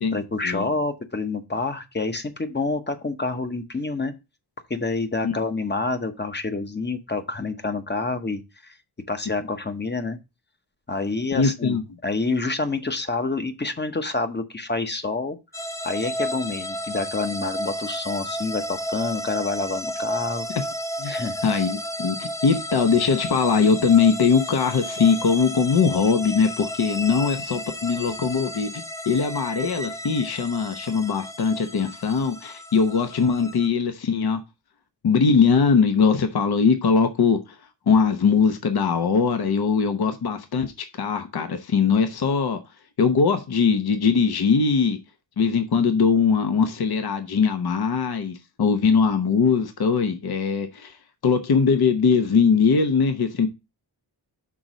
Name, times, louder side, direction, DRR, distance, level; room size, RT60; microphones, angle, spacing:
voice 1, 0.1-4.1 4.7-8.7 9.1-10.2 10.9-15.4 15.8-20.5 21.0-21.3, left 3 dB, 25° left, 0.9 m, -28 dB
voice 2, 11.3-11.8 21.0-21.1 21.4-34.4 35.0-37.4 37.9-40.7 41.0-42.6 43.0-45.0 45.4-51.0 51.2-53.5, left 5 dB, 60° left, 0.9 m, -21 dB
sound 1, 15.5-33.7, equal, 10° left, 0.4 m, -33 dB
6.0 x 4.0 x 6.0 m
wide cardioid pair, 140°, 42 cm